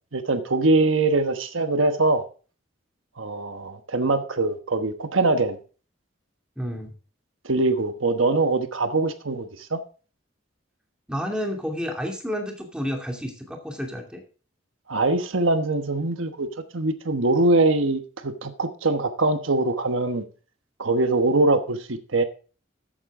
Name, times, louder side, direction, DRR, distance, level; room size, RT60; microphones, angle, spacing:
voice 1, 0.1-2.3 3.2-5.6 7.4-9.8 14.9-16.5 16.7-20.2 20.8-22.2, right 2 dB, 85° right, 1.2 m, -23 dB
voice 2, 6.6-6.9 11.1-14.2, equal, 5° right, 2.5 m, -30 dB
13.5 x 9.1 x 3.7 m
head